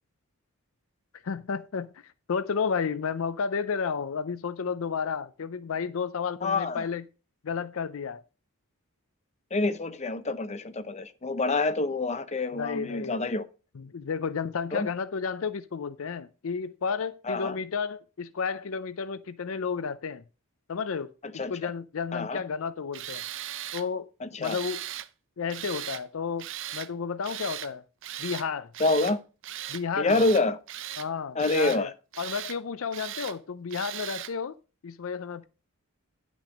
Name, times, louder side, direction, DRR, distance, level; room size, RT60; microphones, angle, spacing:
voice 1, 1.2-7.0 7.4-8.2 12.5-13.3 13.8-20.2 20.7-21.1 21.5-23.2 23.7-24.1 24.4-24.8 25.4-26.5 26.7-27.8 28.2-28.7 29.7-30.3 31.0-34.5 34.8-35.4, left 6 dB, 65° left, 0.5 m, -32 dB
voice 2, 6.4-6.9 9.5-13.4 14.7-14.9 17.2-17.6 21.3-21.5 22.1-22.4 24.2-24.6 28.8-29.2 30.0-30.6 31.3-31.9, left 2 dB, 30° left, 0.7 m, -27 dB
Tools, 22.9-23.9 24.4-25.1 25.5-26.0 26.4-26.9 27.2-27.7 28.0-28.5 28.7-29.2 29.4-29.8 30.1-31.1 31.4-31.8 32.1-32.6 32.9-33.4 33.7-34.3, right 12 dB, 60° right, 0.6 m, -38 dB
10.5 x 6.1 x 5.1 m
head